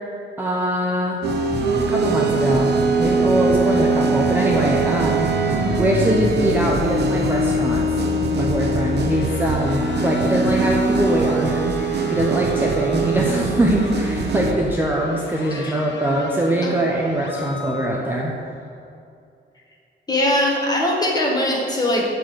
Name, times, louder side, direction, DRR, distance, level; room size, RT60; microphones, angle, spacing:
voice 1, 0.4-1.2 1.9-2.7 3.0-5.3 5.8-8.0 8.3-11.7 12.1-18.3, right 1 dB, 10° right, -3 dB, 0.7 m, -22 dB
sound 1, 1.2-14.5, right 3 dB, 60° right, 0.9 m, -22 dB
sound 2, 1.5-17.9, left 6 dB, 70° left, 0.7 m, -34 dB
voice 2, 20.1-22.0, left 1 dB, 20° left, -2 dB, 1.6 m, -21 dB
11.0 x 4.4 x 7.8 m, 2.4 s
wide cardioid pair, 180°, 19 cm